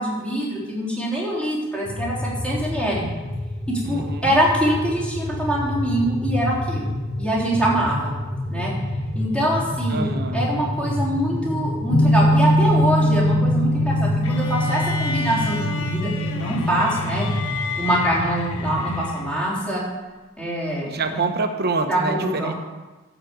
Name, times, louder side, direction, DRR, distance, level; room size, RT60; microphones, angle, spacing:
voice 1, 0.0-3.1 3.7-6.9 7.2-8.1 8.5-8.7 9.1-17.3 17.8-19.8 20.4-21.2 21.9-22.5, right 1 dB, 5° left, -6 dB, 3.4 m, -24 dB
sound 1, 1.8-19.0, left 1 dB, 25° left, 4.1 m, -29 dB
voice 2, 3.8-4.3 9.9-10.5 20.9-22.5, right 3 dB, 50° right, 7 dB, 1.0 m, -26 dB
sound 2, 11.9-17.5, left 1 dB, 60° left, 1.0 m, -22 dB
sound 3, 14.2-19.5, left 4 dB, 85° left, 1.1 m, -32 dB
11.5 x 5.1 x 8.0 m, 1.2 s
head